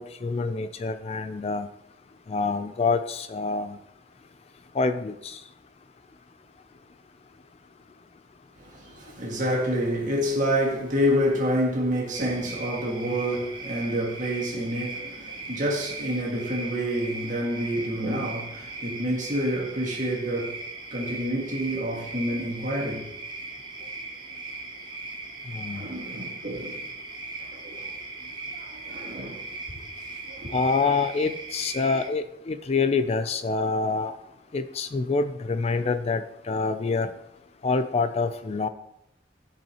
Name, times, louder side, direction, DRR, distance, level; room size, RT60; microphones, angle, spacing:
voice 1, 0.0-1.7 2.3-3.8 4.8-5.4 25.5-25.8 30.5-34.1 34.5-37.1 37.6-38.7, left 4 dB, 35° left, 0.4 m, -26 dB
voice 2, 8.6-20.6 20.9-23.1 25.7-26.8 27.5-27.9 28.2-29.4 30.3-30.5, equal, 45° right, 1.9 m, -28 dB
sound 1, 12.1-32.1, right 3 dB, 25° right, 1.0 m, -39 dB
14.0 x 5.4 x 2.9 m
head